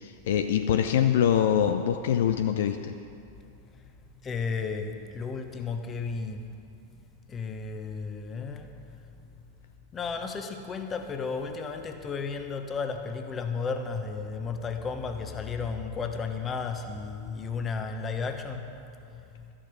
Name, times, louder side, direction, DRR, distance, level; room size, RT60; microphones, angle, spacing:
voice 1, 0.0-2.9, left 9 dB, 60° left, 8 dB, 0.5 m, -24 dB
voice 2, 4.2-6.4 7.3-8.7 9.9-19.5, left 5 dB, 20° left, 6 dB, 1.1 m, -34 dB
13.5 x 10.0 x 6.2 m, 2.5 s
figure-of-eight pair, 90°, 0 cm